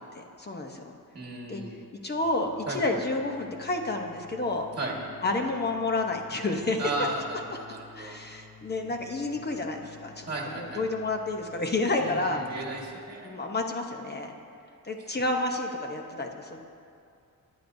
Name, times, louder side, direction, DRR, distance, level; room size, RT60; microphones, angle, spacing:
voice 1, 0.1-0.8 1.5-1.6 2.0-4.7 5.2-6.8 7.9-12.4 13.2-14.3 14.8-16.6, left 2 dB, 30° left, 3 dB, 0.9 m, -30 dB
voice 2, 1.1-1.8 2.7-2.9 4.8-4.9 6.8-8.1 10.3-10.8 12.0-13.3, right 2 dB, 30° right, -1 dB, 1.5 m, -35 dB
sound 1, 2.2-12.8, left 5 dB, 90° left, 1.3 m, -53 dB
21.0 x 9.7 x 2.7 m, 2.4 s
wide cardioid pair, 170°, 35 cm